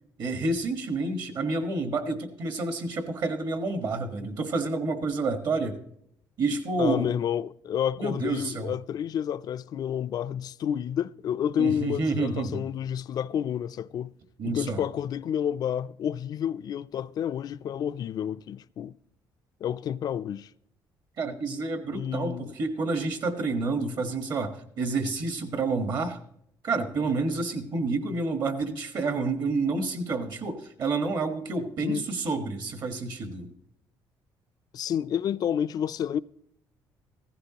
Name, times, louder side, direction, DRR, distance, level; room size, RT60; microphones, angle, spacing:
voice 1, 0.2-5.8 6.4-7.1 8.0-8.7 11.6-12.6 14.4-14.8 21.2-26.2 26.6-33.5, right 3 dB, 55° right, 1.5 m, -29 dB
voice 2, 6.8-14.1 14.4-18.9 19.6-20.5 21.9-22.5 31.8-32.1 34.7-36.2, left 9 dB, 50° left, 0.4 m, -30 dB
15.5 x 14.5 x 2.9 m
cardioid pair, 120°, 8 cm